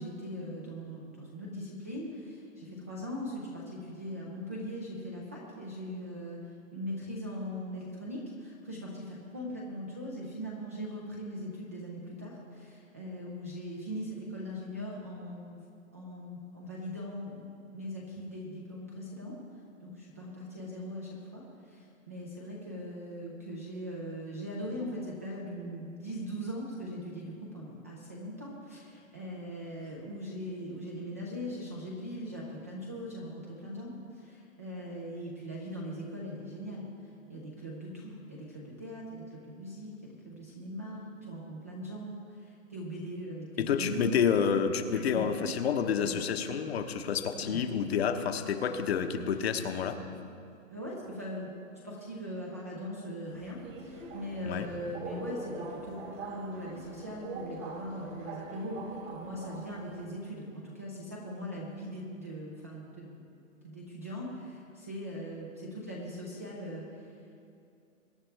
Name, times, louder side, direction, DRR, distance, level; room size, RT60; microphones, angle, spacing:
voice 1, 0.0-15.6 15.9-17.4 17.7-19.3 19.8-36.9 37.3-44.2 45.1-45.2 46.0-46.1 47.4-47.7 50.7-51.5 51.8-63.3 63.6-67.1, equal, 10° right, -3 dB, 0.4 m, -40 dB
voice 2, 43.6-50.0 54.4-54.7, left 7 dB, 50° left, 7 dB, 1.0 m, -29 dB
Subway metro underground, 53.3-60.1, right 3 dB, 65° right, 2.9 m, -43 dB
22.0 x 10.0 x 3.3 m, 2.5 s
hypercardioid pair, 155°, 41 cm